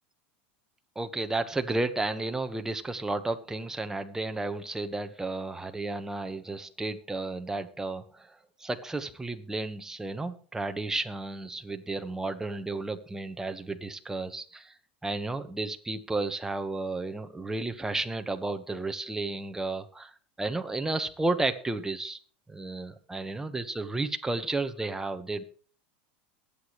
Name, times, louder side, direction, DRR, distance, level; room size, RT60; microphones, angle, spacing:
voice 1, 0.9-14.7 15.0-22.2 22.5-25.4, right 2 dB, 10° right, 7 dB, 1.4 m, -32 dB
21.5 x 8.6 x 3.2 m, 0.43 s
supercardioid pair, 110°, 6 cm